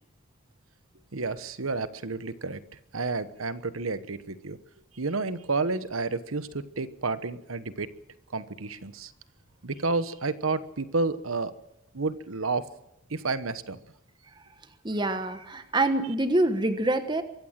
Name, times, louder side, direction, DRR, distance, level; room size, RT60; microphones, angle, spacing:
voice 1, 1.1-2.6 2.9-4.6 5.0-7.9 8.3-9.1 9.6-11.5 11.9-12.6 13.1-13.8, right 3 dB, 80° right, 13 dB, 1.2 m, -30 dB
voice 2, 14.8-17.2, right 2 dB, 20° right, 9 dB, 1.3 m, -25 dB
23.5 x 15.5 x 7.6 m, 0.85 s
head